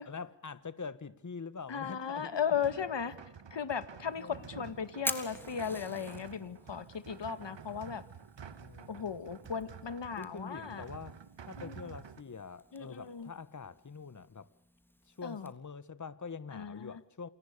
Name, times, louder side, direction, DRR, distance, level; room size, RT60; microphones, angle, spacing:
voice 1, 0.0-2.4 4.2-4.4 8.6-9.1 10.2-11.2 11.4-14.5 15.1-17.3, left 5 dB, 40° left, 1.6 m, -44 dB
voice 2, 1.7-3.2 3.5-8.0 8.9-10.8 11.6-11.9 12.7-13.3 15.2-15.5 16.5-17.0, left 7 dB, 70° left, 2.2 m, -36 dB
sound 1, 2.3-12.2, right 7 dB, 70° right, 1.9 m, -50 dB
Fire, 4.0-15.5, equal, 5° left, 3.5 m, -47 dB
29.0 x 27.5 x 6.9 m
wide cardioid pair, 90°, 45 cm